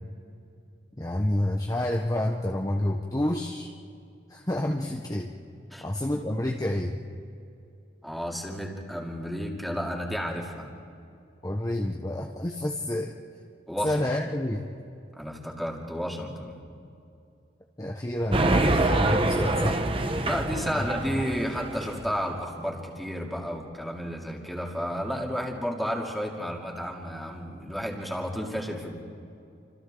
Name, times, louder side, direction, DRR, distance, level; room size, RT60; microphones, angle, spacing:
voice 1, 1.0-3.7 4.3-5.3 5.8-7.0 11.4-13.1 13.8-14.7 17.8-19.8 20.7-20.9, left 1 dB, 20° left, 1 dB, 1.0 m, -29 dB
voice 2, 8.0-10.7 13.7-14.0 15.2-16.6 20.2-29.0, equal, ahead, -1 dB, 2.8 m, -32 dB
sound 1, 18.3-22.1, right 2 dB, 30° right, 1.1 m, -25 dB
29.5 x 26.5 x 3.9 m, 2.6 s
head